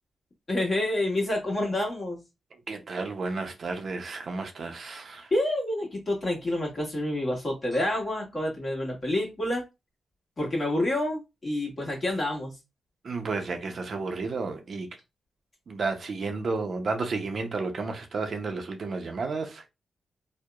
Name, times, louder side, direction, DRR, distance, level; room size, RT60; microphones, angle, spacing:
voice 1, 0.5-2.2 5.3-9.6 10.4-12.6, left 1 dB, 45° left, 1.2 m, -28 dB
voice 2, 2.7-5.3 13.0-14.9 15.7-19.7, right 3 dB, 60° right, 0.5 m, -32 dB
2.8 x 2.0 x 2.3 m
cardioid pair, 60°, 0 cm